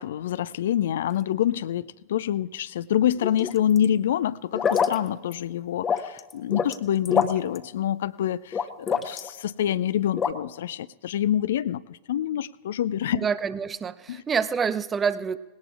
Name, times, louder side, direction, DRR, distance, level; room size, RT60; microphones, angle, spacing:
voice 1, 0.0-13.3 14.1-14.2, left 10 dB, 60° left, 18 dB, 0.3 m, -26 dB
sound 1, 3.2-3.9 4.5-5.0 5.3-5.4 5.8-6.8 7.1-7.6 8.5-9.3 10.2-10.3, left 7 dB, 20° left, 0.8 m, -25 dB
voice 2, 13.1-15.4, right 6 dB, 20° right, 16 dB, 0.5 m, -27 dB
19.5 x 17.5 x 2.4 m, 1.2 s
figure-of-eight pair, 90°, 0 cm